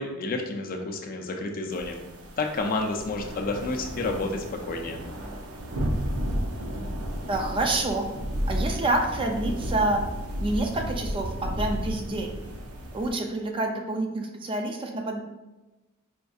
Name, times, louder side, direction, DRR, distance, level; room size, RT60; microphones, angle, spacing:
voice 1, 0.0-2.0 2.4-5.0, left 3 dB, 40° left, 3 dB, 0.4 m, -30 dB
sound 1, 1.7-13.1, equal, 80° right, 0.5 m, -33 dB
voice 2, 7.3-8.1 8.5-10.0 10.4-12.3 12.9-15.2, right 2 dB, 25° right, 3 dB, 0.3 m, -28 dB
4.3 x 2.6 x 2.3 m, 1.1 s
head